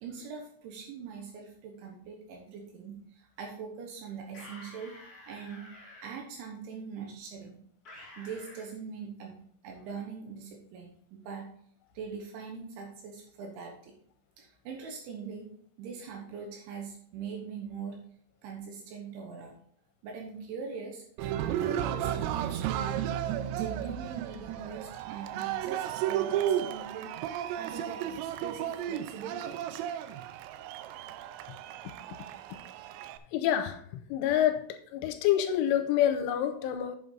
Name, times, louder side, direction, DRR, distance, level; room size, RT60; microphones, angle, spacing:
voice 1, 0.0-4.9 5.3-5.7 6.0-7.6 8.2-11.5 11.9-13.9 14.4-15.5 15.8-18.0 18.4-19.6 20.0-21.0 21.4-23.1 23.4-27.1 27.6-29.6, right 5 dB, 75° right, 3.3 m, -42 dB
sound 1, 4.3-6.1 7.8-8.7, left 1 dB, 25° left, 2.5 m, -49 dB
Cheering, 21.2-33.2, right 11 dB, 90° right, 3.2 m, -33 dB
voice 2, 33.3-33.8 34.1-34.7 34.9-37.0, left 11 dB, 85° left, 3.0 m, -27 dB
8.1 x 7.8 x 3.8 m
omnidirectional pair, 5.9 m